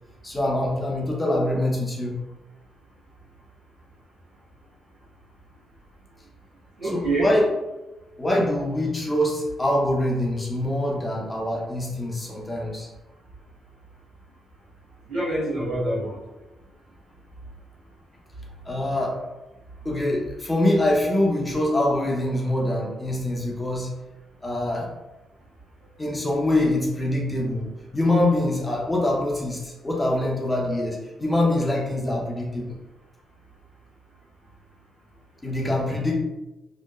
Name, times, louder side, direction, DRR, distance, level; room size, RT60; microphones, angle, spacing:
voice 1, 0.2-2.1 6.8-7.5 8.2-12.9 18.7-19.2 19.8-23.9 24.4-24.9 26.0-32.8 35.4-36.1, left 1 dB, 25° left, -3 dB, 0.8 m, -24 dB
voice 2, 6.8-7.3 15.1-16.1 35.6-36.1, right 2 dB, 80° right, -10 dB, 1.5 m, -27 dB
3.0 x 2.1 x 2.4 m, 1.1 s
hypercardioid pair, 45°, 0 cm